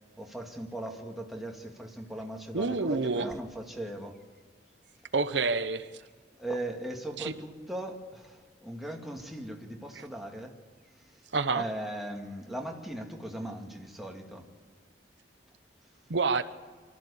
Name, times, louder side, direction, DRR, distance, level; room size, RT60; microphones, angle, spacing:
voice 1, 0.2-4.2 6.4-10.5 11.1-11.2 11.5-14.5, right 1 dB, ahead, 1 dB, 2.2 m, -38 dB
voice 2, 2.5-3.3 5.1-5.9 7.2-7.3 10.0-10.1 11.3-11.6 16.1-16.4, right 4 dB, 80° right, 11 dB, 0.9 m, -28 dB
25.5 x 14.0 x 8.5 m, 1.5 s
head